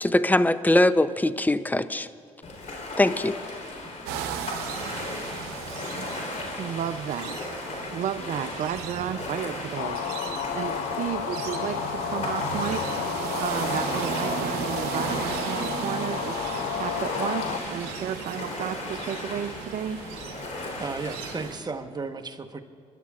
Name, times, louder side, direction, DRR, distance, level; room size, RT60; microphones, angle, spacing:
voice 1, 0.0-2.1 3.0-3.4, left 1 dB, 10° left, 13 dB, 0.5 m, -21 dB
Ocean, 2.4-21.5, left 2 dB, 50° left, 3.5 m, -37 dB
sound 1, 4.1-21.6, right 7 dB, 85° right, 0.8 m, -36 dB
voice 2, 6.6-7.6 7.9-12.9 13.4-16.5 16.7-20.0, right 9 dB, 60° right, 9 dB, 0.5 m, -33 dB
sound 2, 9.8-17.6, left 10 dB, 80° left, 0.7 m, -32 dB
voice 3, 20.8-22.6, right 4 dB, 25° right, 6 dB, 1.1 m, -34 dB
27.0 x 11.5 x 2.4 m, 2.4 s
supercardioid pair, 55°, 15 cm